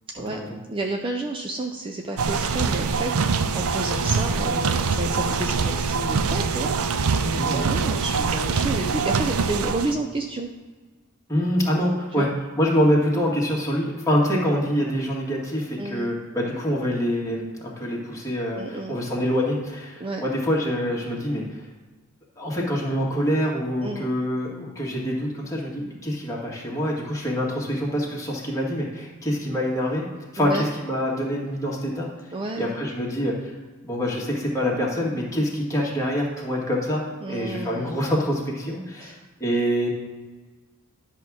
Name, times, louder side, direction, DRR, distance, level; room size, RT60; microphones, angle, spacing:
voice 1, 0.7-10.5 12.2-12.3 15.8-16.1 18.6-19.0 20.0-20.2 23.8-24.1 30.4-30.7 32.3-32.7 37.2-38.0 39.0-39.2, right 2 dB, 25° right, 2 dB, 0.5 m, -31 dB
sound 1, 2.2-9.9, right 5 dB, 75° right, 0.5 m, -24 dB
voice 2, 7.4-7.8 11.3-12.3 12.6-21.7 22.4-30.0 30.3-32.1 32.6-33.5 33.8-39.9, equal, 15° left, -4 dB, 1.8 m, -25 dB
10.5 x 3.6 x 6.3 m, 1.3 s
head